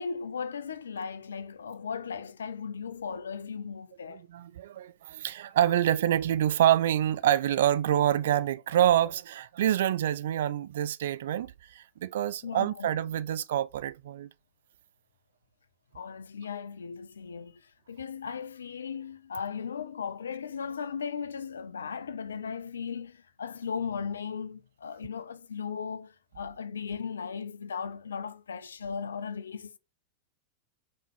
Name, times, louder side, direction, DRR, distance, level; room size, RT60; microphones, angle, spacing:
voice 1, 0.0-4.2 12.4-13.0 15.9-29.8, left 6 dB, 70° left, 0.5 m, -37 dB
voice 2, 4.1-14.3, right 11 dB, 60° right, 0.4 m, -26 dB
5.6 x 3.2 x 5.5 m
figure-of-eight pair, 90°, 0 cm